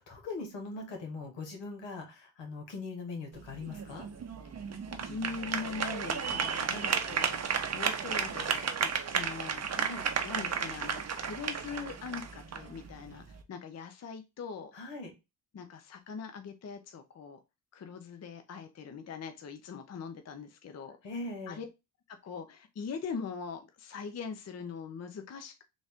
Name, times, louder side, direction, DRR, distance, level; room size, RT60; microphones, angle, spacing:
voice 1, 0.0-4.1 6.7-6.9 9.7-10.0 14.7-15.1 21.0-21.6, left 3 dB, 80° left, 3 dB, 1.4 m, -41 dB
sound 1, 3.3-13.4, right 6 dB, 35° right, 0.6 m, -33 dB
voice 2, 5.0-7.4 7.7-9.7 10.2-14.7 15.5-17.4 17.7-21.0 21.5-21.7 22.1-25.6, left 5 dB, 35° left, 7 dB, 0.6 m, -42 dB
3.9 x 2.4 x 3.5 m, 0.25 s
cardioid pair, 80°, 44 cm